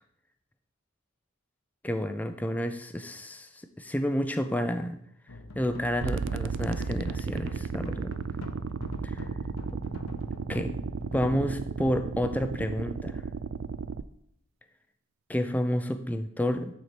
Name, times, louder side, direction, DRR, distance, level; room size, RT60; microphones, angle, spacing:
voice 1, 1.8-3.5 3.8-5.0 5.5-8.1 9.0-9.2 10.5-10.8 11.1-13.3 15.3-16.7, equal, 5° left, 8 dB, 0.4 m, -30 dB
sound 1, 5.3-12.5, left 2 dB, 80° left, 0.8 m, -44 dB
sound 2, 6.0-14.0, right 5 dB, 60° right, 0.3 m, -34 dB
9.5 x 4.6 x 4.3 m, 0.74 s
head